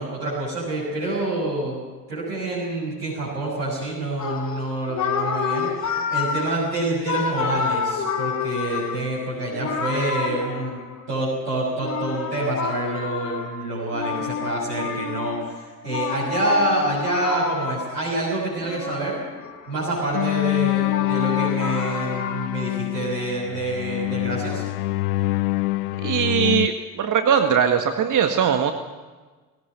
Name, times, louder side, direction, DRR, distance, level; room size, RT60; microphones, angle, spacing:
voice 1, 0.0-1.8 2.1-10.8 11.1-19.2 19.7-24.6, right 1 dB, 85° right, -6 dB, 6.6 m, -27 dB
sound 1, 4.2-11.2 11.8-18.1 18.6-19.8 20.2-22.5, left 6 dB, 35° left, 4.0 m, -29 dB
sound 2, 20.1-26.7, left 21 dB, 70° left, 0.6 m, -25 dB
voice 2, 26.0-28.7, right 7 dB, 40° right, 6 dB, 1.8 m, -20 dB
20.0 x 17.5 x 9.4 m, 1.3 s
figure-of-eight pair, 55°, 47 cm